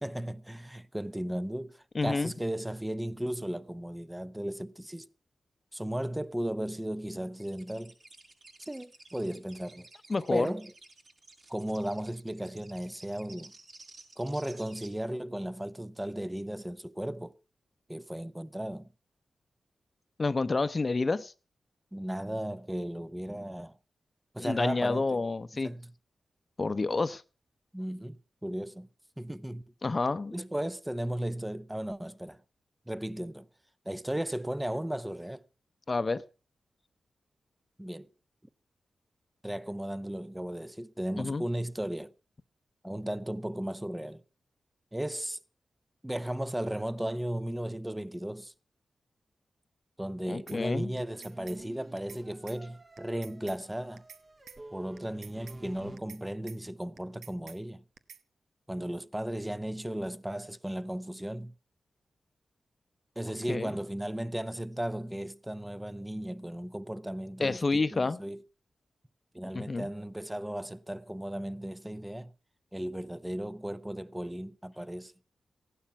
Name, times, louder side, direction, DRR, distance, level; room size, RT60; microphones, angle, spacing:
voice 1, 0.0-5.1 5.7-7.9 8.6-9.9 10.3-10.7 11.5-13.5 14.2-17.4 17.9-18.9 21.9-23.8 24.3-25.3 25.5-25.9 27.7-28.9 29.2-29.6 30.3-32.4 32.9-33.5 33.8-35.4 37.8-38.1 39.4-42.1 42.8-44.2 44.9-45.4 46.0-48.5 50.0-54.0 54.7-57.8 58.7-61.5 63.2-68.4 69.3-72.3 72.7-75.1, right 1 dB, 10° right, 0.8 m, -35 dB
voice 2, 1.9-2.3 10.1-10.5 20.2-21.3 24.4-25.7 26.6-27.2 29.8-30.3 35.9-36.2 41.2-41.4 50.3-50.9 63.5-63.7 67.4-68.2 69.5-69.9, left 3 dB, 45° left, 0.8 m, -29 dB
sound 1, 7.4-14.9, right 3 dB, 60° right, 7.5 m, -54 dB
sound 2, 50.5-50.6 51.0-51.6 52.0-52.2 52.5-52.6 53.0-53.6 54.0-54.2 54.5-54.6 55.0-55.6 56.0-56.2 56.5-56.6 57.0-57.6 58.0-58.2, right 6 dB, 85° right, 0.9 m, -49 dB
sound 3, 50.9-56.0, right 2 dB, 40° right, 1.7 m, -51 dB
15.5 x 11.5 x 5.8 m
cardioid pair, 50°, 0 cm